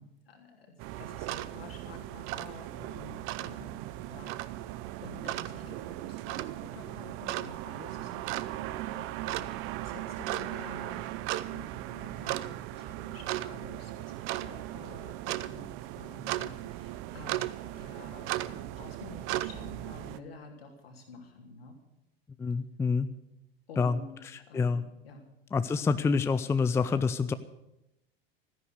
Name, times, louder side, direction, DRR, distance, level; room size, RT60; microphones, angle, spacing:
voice 1, 0.0-21.7 23.7-24.2 24.5-25.3, left 2 dB, 70° left, 2 dB, 3.2 m, -49 dB
sound 1, 0.8-20.2, right 15 dB, 40° right, 0.7 m, -37 dB
voice 2, 22.4-23.1 23.8-24.0 24.5-24.8 25.5-27.3, left 5 dB, 10° left, 13 dB, 0.5 m, -27 dB
14.0 x 10.5 x 8.1 m, 0.88 s
figure-of-eight pair, 80°, 30 cm